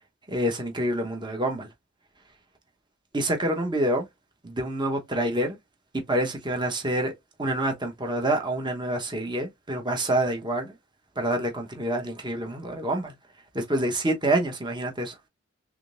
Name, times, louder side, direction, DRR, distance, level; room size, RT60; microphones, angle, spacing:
voice 1, 0.3-1.7 3.1-4.1 4.4-5.6 5.9-7.1 7.4-10.7 11.2-13.1 13.5-15.1, right 1 dB, 25° right, 1.1 m, -27 dB
3.7 x 3.5 x 2.5 m
head